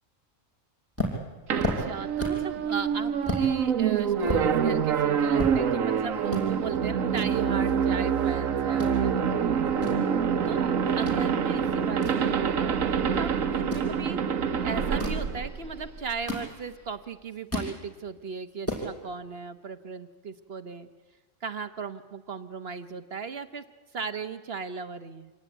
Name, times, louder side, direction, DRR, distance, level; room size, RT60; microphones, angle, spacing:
sound 1, 1.0-2.5 2.9-3.0 3.3-3.5 3.9-5.9 6.2-6.4 7.1-8.3 8.6-9.0 9.5-11.2 11.6-12.9 13.5-13.9 14.8-15.3 15.9-16.9 17.2-17.8 18.2-18.3 18.5-18.9, equal, 10° left, 5.5 m, -33 dB
voice 1, 1.5-9.3 10.4-14.2 14.6-20.9 21.4-23.6 23.9-25.3, right 5 dB, 50° right, 10 dB, 1.2 m, -37 dB
sound 2, 1.5-16.2, right 7 dB, 90° right, 1.5 m, -26 dB
26.0 x 18.5 x 9.2 m, 1.3 s
omnidirectional pair, 1.3 m